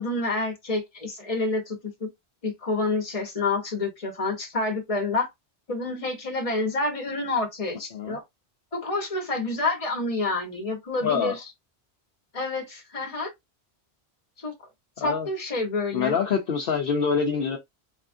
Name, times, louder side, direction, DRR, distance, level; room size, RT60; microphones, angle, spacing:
voice 1, 0.0-2.1 2.4-5.3 5.7-8.2 8.7-11.4 12.3-13.3 14.4-14.5 15.0-16.1, left 3 dB, 35° left, 1.1 m, -28 dB
voice 2, 11.0-11.3 15.0-15.3 15.9-17.6, left 6 dB, 60° left, 0.8 m, -25 dB
3.5 x 2.4 x 2.5 m
omnidirectional pair, 1.1 m